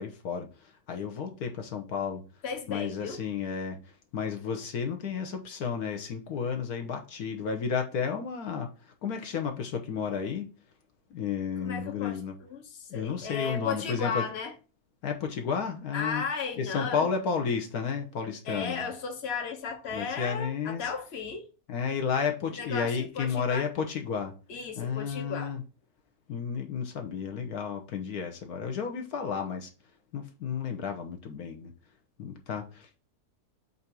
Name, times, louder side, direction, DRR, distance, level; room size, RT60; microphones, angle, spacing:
voice 1, 0.0-2.2 2.7-3.8 4.1-8.7 9.0-10.5 11.1-12.3 12.9-14.3 15.0-16.2 16.6-18.8 19.9-20.9 21.7-24.3 24.8-25.6 26.3-29.7 30.1-31.7 32.2-33.0, left 6 dB, 75° left, 1.4 m, -32 dB
voice 2, 2.4-3.2 11.6-14.5 15.9-17.0 18.4-21.5 22.6-23.7 24.5-25.5, left 5 dB, 45° left, 1.3 m, -35 dB
8.0 x 2.7 x 5.9 m
omnidirectional pair, 1.6 m